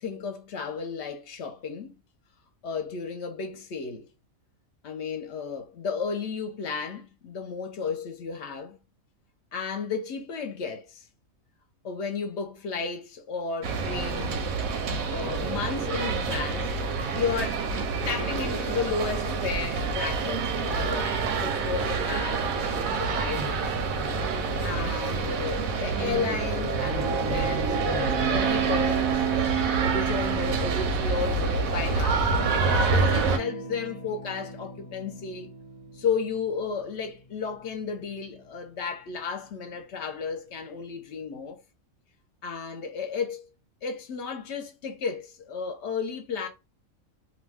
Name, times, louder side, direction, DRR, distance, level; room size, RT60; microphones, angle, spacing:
voice 1, 0.0-1.9 2.6-4.1 4.8-8.8 9.5-11.1 11.8-14.4 15.1-16.7 17.1-17.7 18.1-23.6 24.6-29.2 29.8-32.3 32.7-35.5 36.0-41.6 42.4-43.5 43.8-46.5, left 5 dB, 65° left, 0.8 m, -33 dB
sound 1, 13.6-33.4, right 4 dB, 90° right, 1.0 m, -27 dB
Electric guitar / Strum, 32.3-40.6, right 1 dB, 25° left, 0.5 m, -42 dB
2.6 x 2.2 x 3.3 m
omnidirectional pair, 1.4 m